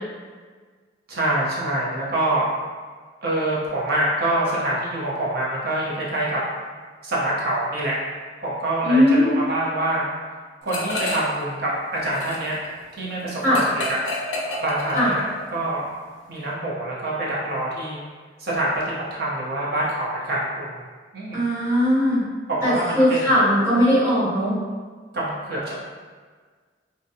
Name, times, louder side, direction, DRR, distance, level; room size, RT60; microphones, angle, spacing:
voice 1, 1.1-2.5 3.2-6.4 7.0-8.0 8.4-10.1 10.6-12.6 13.0-14.0 14.6-15.2 15.5-15.9 16.3-18.0 18.4-20.8 21.1-21.5 22.5-23.3 25.1-25.8, right 1 dB, 55° right, -5 dB, 0.7 m, -25 dB
voice 2, 8.8-9.4 13.4-13.6 14.9-15.1 21.3-22.2 22.6-24.5, equal, 15° right, -11 dB, 1.1 m, -19 dB
sound 1, 10.7-11.4 11.7-15.5, left 1 dB, 90° left, 0.4 m, -30 dB
2.6 x 2.2 x 2.7 m, 1.5 s
head